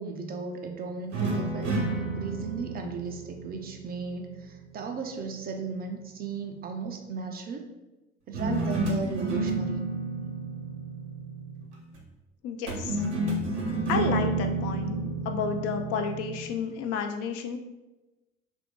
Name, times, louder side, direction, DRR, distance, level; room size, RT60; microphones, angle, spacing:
voice 1, 0.0-7.7 8.3-9.8, right 4 dB, 30° right, 4 dB, 0.4 m, -35 dB
sound 1, 1.1-4.5 8.3-11.7 12.7-16.5, right 2 dB, 80° right, 0.8 m, -31 dB
voice 2, 12.4-13.0 13.9-17.6, left 6 dB, 45° left, 6 dB, 0.4 m, -31 dB
2.8 x 2.5 x 3.5 m, 1.0 s
figure-of-eight pair, 65°, 34 cm